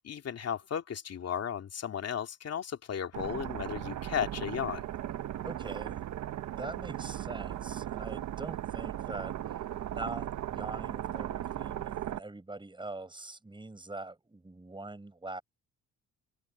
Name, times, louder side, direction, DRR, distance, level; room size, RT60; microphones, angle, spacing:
voice 1, 0.0-4.8, left 8 dB, 55° left, 2.8 m, -35 dB
sound 1, 3.1-12.2, right 12 dB, 70° right, 1.1 m, -37 dB
voice 2, 5.4-6.0 6.6-9.6 9.9-15.4, right 2 dB, 15° right, 7.7 m, -43 dB
cardioid pair, 90°, 30 cm